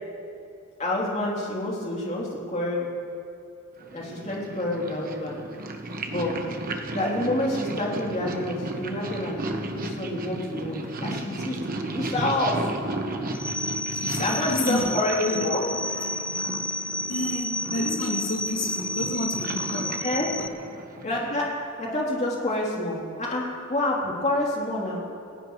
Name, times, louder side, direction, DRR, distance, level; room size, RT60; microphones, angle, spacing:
voice 1, 0.8-2.9 3.9-5.4 6.1-6.4 6.9-9.4 9.7-12.6 14.2-15.6 20.0-20.3 21.0-21.5 21.8-25.0, left 1 dB, 35° left, -3 dB, 3.3 m, -28 dB
Purr, 3.8-21.5, right 2 dB, 45° right, 1.1 m, -34 dB
sound 1, 13.3-20.5, left 1 dB, 5° left, 0.3 m, -31 dB
voice 2, 13.9-15.5 16.4-16.6 17.1-20.0 20.4-20.5, left 1 dB, 80° left, -3 dB, 2.5 m, -30 dB
28.5 x 16.0 x 3.2 m, 2.6 s
head